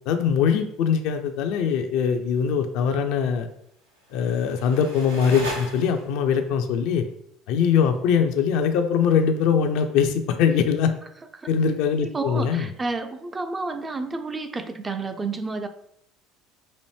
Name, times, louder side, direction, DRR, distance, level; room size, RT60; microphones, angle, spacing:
voice 1, 0.1-3.5 4.1-7.1 7.5-10.9 11.5-12.7, left 7 dB, 60° left, 7 dB, 0.4 m, -22 dB
sound 1, 3.9-6.3, equal, 85° right, 0.8 m, -37 dB
voice 2, 12.0-15.7, right 3 dB, 25° right, 8 dB, 0.4 m, -30 dB
4.2 x 2.6 x 3.1 m, 0.72 s
figure-of-eight pair, 65°, 0 cm